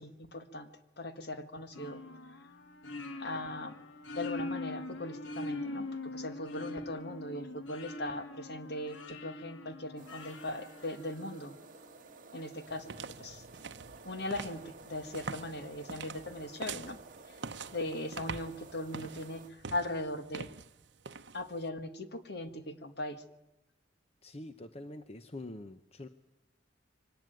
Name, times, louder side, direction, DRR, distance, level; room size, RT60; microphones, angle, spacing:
voice 1, 0.0-2.0 3.2-3.8 4.1-11.5 12.3-13.4 14.0-17.0 17.3-17.4 17.7-20.5 21.3-23.2, left 1 dB, 55° left, 9 dB, 1.7 m, -39 dB
sound 1, 1.7-11.5, left 2 dB, 80° left, 1.4 m, -43 dB
sound 2, 10.0-19.5, right 3 dB, 45° right, 1.5 m, -53 dB
sound 3, 12.7-21.7, right 5 dB, 65° right, 0.8 m, -45 dB
voice 2, 24.2-26.1, left 1 dB, 35° left, 9 dB, 0.8 m, -45 dB
23.5 x 18.5 x 9.3 m, 0.96 s
head